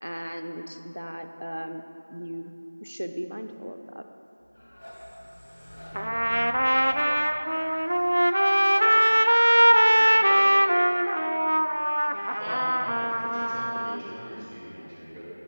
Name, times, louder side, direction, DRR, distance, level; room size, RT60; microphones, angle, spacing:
voice 1, 0.0-1.8 2.1-2.5 2.8-4.0, equal, 85° right, 7 dB, 0.8 m, -36 dB
sound 1, 4.4-9.3, equal, 35° left, 2.3 m, -46 dB
Trumpet, 5.9-14.0, equal, 55° right, 0.5 m, -22 dB
voice 2, 8.7-10.8 11.1-12.2 13.2-13.3, equal, ahead, -22 dB, 1.1 m, -43 dB
voice 3, 12.3-15.2, equal, 20° right, -7 dB, 2.2 m, -40 dB
17.0 x 11.5 x 2.3 m, 2.8 s
figure-of-eight pair, 175°, 0 cm